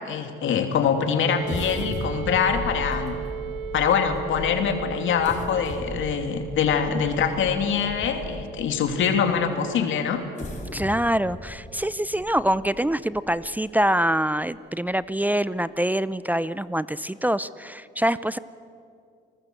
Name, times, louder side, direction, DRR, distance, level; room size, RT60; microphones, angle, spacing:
voice 1, 0.0-3.1 3.7-10.2, left 7 dB, 80° left, 6 dB, 2.8 m, -24 dB
sound 1, 1.2-12.9, right 9 dB, 80° right, 1.1 m, -38 dB
sound 2, 1.4-8.6 9.2-9.3 10.1-13.7 14.1-14.2 14.7-14.9, left 1 dB, 40° left, 5.0 m, -37 dB
voice 2, 10.7-18.4, right 1 dB, 10° right, 16 dB, 0.6 m, -25 dB
29.5 x 20.0 x 7.9 m, 2.4 s
cardioid pair, 90°, 20 cm